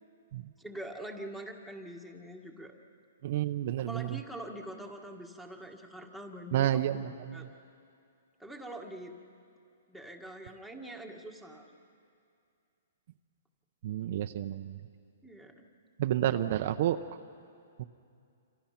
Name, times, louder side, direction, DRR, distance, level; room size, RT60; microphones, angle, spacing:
voice 1, 0.6-2.7 3.8-6.8 7.3-7.5 8.4-9.2 9.9-11.7 15.2-15.6, right 1 dB, ahead, 3 dB, 1.7 m, -44 dB
voice 2, 3.2-4.2 6.5-7.5 13.8-14.8 16.0-17.0 17.8-17.9, right 12 dB, 50° right, 8 dB, 0.7 m, -30 dB
28.0 x 27.0 x 5.9 m, 2.5 s
hypercardioid pair, 160°, 0 cm